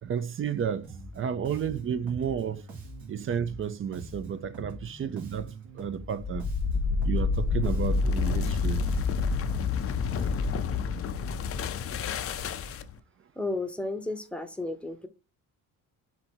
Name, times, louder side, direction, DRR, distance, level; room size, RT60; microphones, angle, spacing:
voice 1, 0.0-2.6 3.1-6.5 7.0-8.9, right 8 dB, 35° right, 0.4 m, -32 dB
Bass guitar, 0.8-10.7, right 2 dB, 70° right, 1.9 m, -44 dB
sound 1, 6.1-13.0, left 4 dB, 40° left, 0.5 m, -28 dB
voice 2, 13.4-15.1, left 2 dB, 5° left, 0.7 m, -33 dB
4.5 x 2.7 x 4.2 m
cardioid pair, 100°, 36 cm